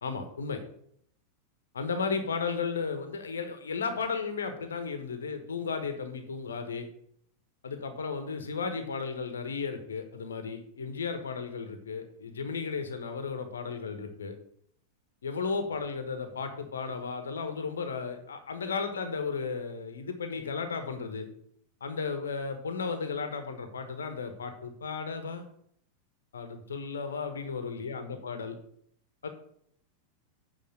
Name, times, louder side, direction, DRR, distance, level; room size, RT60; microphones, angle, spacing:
voice 1, 0.0-0.6 1.7-6.9 7.6-14.3 15.2-21.3 21.8-25.5 26.3-28.5 29.2-29.3, left 5 dB, 70° left, 8 dB, 1.2 m, -34 dB
8.6 x 4.9 x 7.6 m, 0.67 s
figure-of-eight pair, 90°, 0 cm